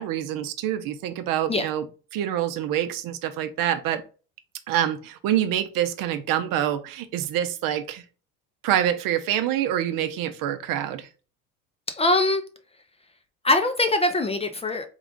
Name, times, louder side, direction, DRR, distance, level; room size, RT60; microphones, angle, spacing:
voice 1, 0.0-1.8 2.1-4.0 4.7-8.0 8.6-11.1, right 11 dB, 65° right, 0.7 m, -26 dB
voice 2, 11.9-12.4 13.4-14.9, left 2 dB, 15° left, 0.4 m, -22 dB
3.7 x 2.4 x 3.6 m
supercardioid pair, 90°, 37 cm